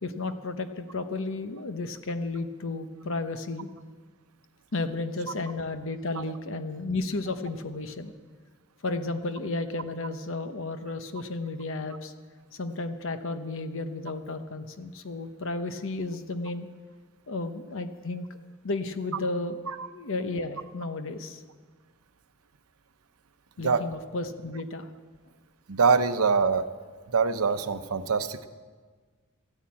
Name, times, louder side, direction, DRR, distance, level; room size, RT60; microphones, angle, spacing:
voice 1, 0.0-3.7 4.7-8.1 8.8-12.1 12.5-16.7 17.3-18.3 18.6-19.6 19.9-21.4 23.6-24.9, left 2 dB, 65° left, 9 dB, 0.9 m, -33 dB
voice 2, 25.7-26.6 27.1-28.5, right 5 dB, 90° right, 10 dB, 0.8 m, -24 dB
14.0 x 10.0 x 8.6 m, 1.5 s
head